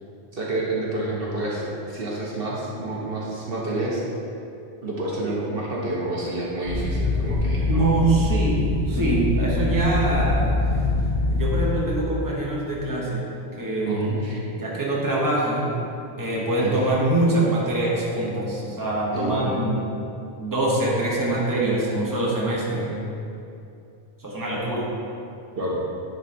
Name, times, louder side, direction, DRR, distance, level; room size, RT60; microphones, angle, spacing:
voice 1, 0.3-4.0 4.8-8.0 13.8-14.4 16.6-16.7 19.1-19.4 25.5-25.8, right 2 dB, 60° right, -5 dB, 1.3 m, -29 dB
sound 1, 6.6-11.7, left 2 dB, 60° left, 1.5 m, -23 dB
voice 2, 7.7-10.7 11.3-13.3 13.6-14.1 14.5-15.7 16.2-19.8 20.4-23.0 24.2-24.9, right 2 dB, 20° right, -4 dB, 1.1 m, -24 dB
10.0 x 4.0 x 4.3 m, 2.7 s
omnidirectional pair, 1.1 m